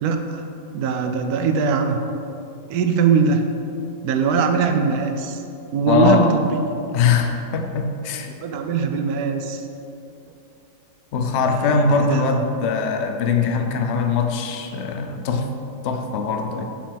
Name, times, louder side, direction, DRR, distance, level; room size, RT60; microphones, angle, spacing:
voice 1, 0.0-0.5 0.7-2.0 2.7-3.4 4.0-5.4 5.7-6.6 8.3-9.6 11.6-12.4, right 5 dB, 70° right, 6 dB, 1.0 m, -21 dB
voice 2, 5.9-6.3 6.9-8.3 11.1-15.5 15.8-16.6, left 5 dB, 70° left, 5 dB, 0.6 m, -21 dB
5.7 x 5.0 x 5.1 m, 2.6 s
omnidirectional pair, 1.8 m